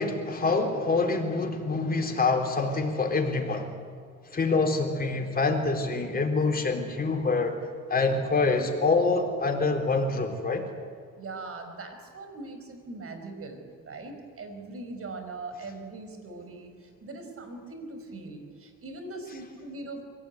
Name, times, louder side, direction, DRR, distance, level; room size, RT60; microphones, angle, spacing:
voice 1, 0.0-3.7 4.3-7.6 7.9-10.6, left 3 dB, 30° left, 2 dB, 4.0 m, -26 dB
voice 2, 11.2-20.0, right 3 dB, 50° right, 6 dB, 4.9 m, -41 dB
23.5 x 17.5 x 9.5 m, 2.1 s
cardioid pair, 90°, 30 cm